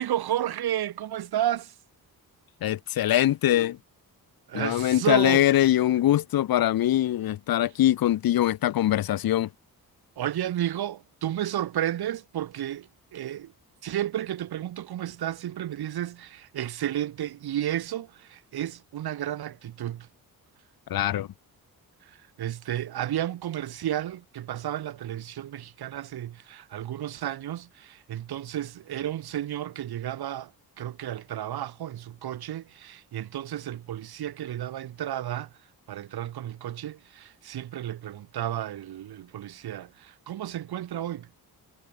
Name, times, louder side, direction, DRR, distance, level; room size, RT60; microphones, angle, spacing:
voice 1, 0.0-1.7 4.5-5.6 10.2-13.5 13.8-20.1 22.0-30.5 30.8-35.5 35.9-41.3, right 12 dB, 90° right, 1.3 m, -32 dB
voice 2, 2.6-3.8 4.5-9.5 20.9-21.3, left 13 dB, 70° left, 0.7 m, -23 dB
wide cardioid pair, 165°, 37 cm